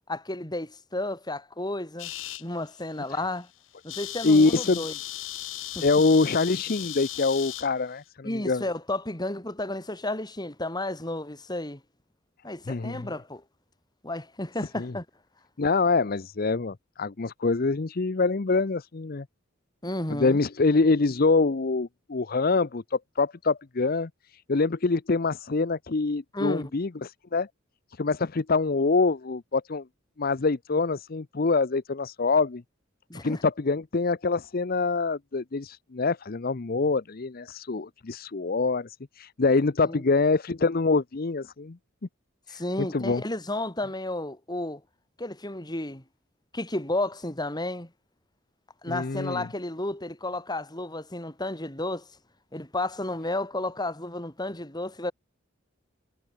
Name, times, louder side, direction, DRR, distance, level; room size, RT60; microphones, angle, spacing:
voice 1, 0.1-2.1 2.4-3.5 3.8-4.9 5.7-5.8 8.2-11.8 12.4-13.4 14.0-15.0 19.8-20.4 26.3-26.7 33.1-33.4 39.9-40.0 42.5-44.8 45.2-46.0 46.5-47.9 48.8-52.1 52.5-55.1, left 1 dB, 20° left, 3.5 m, -32 dB
sound 1, 2.0-2.4 3.0-3.2 3.4-3.5 3.7-7.7, left 15 dB, 75° left, 1.2 m, -36 dB
voice 2, 4.2-4.8 5.8-8.6 12.7-13.1 14.8-14.9 15.6-19.2 20.1-24.1 24.5-27.5 28.0-29.8 30.2-32.6 33.2-41.8 42.5-43.2 48.9-49.5, left 3 dB, 50° left, 0.7 m, -25 dB
head